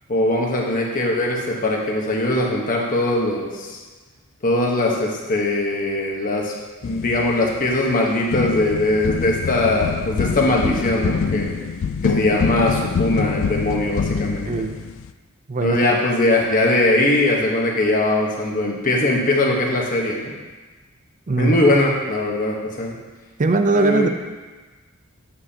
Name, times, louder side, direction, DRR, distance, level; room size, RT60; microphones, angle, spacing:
voice 1, 0.1-3.8 4.4-6.5 6.8-11.6 12.0-14.7 15.6-20.3 21.4-23.0 23.7-24.1, left 1 dB, 40° left, -1 dB, 1.2 m, -21 dB
sound 1, 6.8-7.9 8.3-15.1, left 6 dB, 65° left, 0.3 m, -25 dB
voice 2, 23.4-24.1, right 3 dB, 35° right, 6 dB, 0.5 m, -19 dB
8.5 x 7.4 x 2.9 m, 1.3 s
head